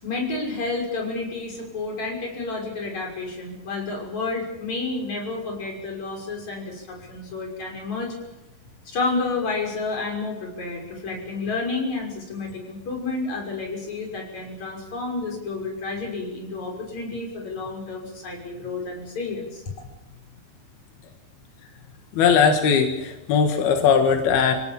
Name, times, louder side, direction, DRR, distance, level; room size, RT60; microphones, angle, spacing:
voice 1, 0.0-8.2 8.9-19.6, left 3 dB, 50° left, 1 dB, 7.3 m, -30 dB
voice 2, 22.2-24.5, left 6 dB, 90° left, 5 dB, 3.7 m, -19 dB
27.5 x 17.5 x 7.5 m, 0.98 s
omnidirectional pair, 4.3 m